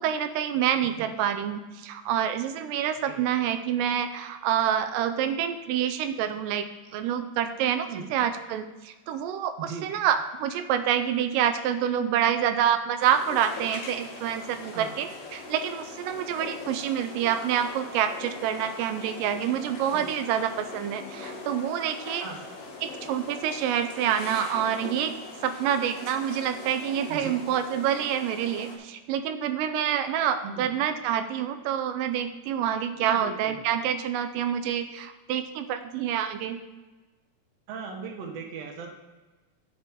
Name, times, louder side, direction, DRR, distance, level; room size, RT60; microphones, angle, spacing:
voice 1, 0.0-6.7 6.9-22.3 22.8-25.2 25.4-36.6, right 9 dB, 90° right, 9 dB, 2.2 m, -27 dB
voice 2, 9.6-9.9 14.7-14.9 19.9-20.1 22.2-22.4 27.1-27.4 30.4-30.7 33.0-33.6 37.7-38.9, right 5 dB, 60° right, 2 dB, 2.0 m, -38 dB
amb train bxl, 13.0-28.8, left 3 dB, 85° left, 2.9 m, -41 dB
9.8 x 7.2 x 3.6 m, 1.2 s
omnidirectional pair, 3.8 m